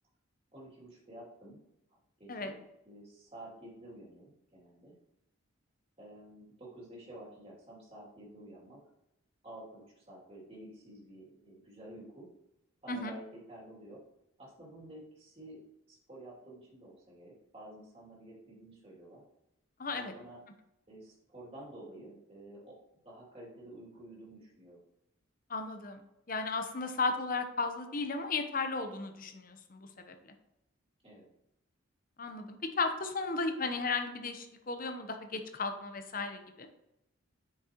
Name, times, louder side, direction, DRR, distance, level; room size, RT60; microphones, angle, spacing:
voice 1, 0.5-1.6 1.9-4.9 6.0-8.8 9.4-12.3 12.8-14.0 14.4-15.6 15.9-19.2 19.9-20.4 20.9-22.8 23.0-24.8 31.0-31.3, right 1 dB, 25° right, -5 dB, 2.6 m, -51 dB
voice 2, 19.8-20.1 25.5-26.0 26.3-30.3 32.2-36.7, left 3 dB, 40° left, 6 dB, 0.8 m, -35 dB
8.7 x 6.4 x 3.0 m, 0.86 s
head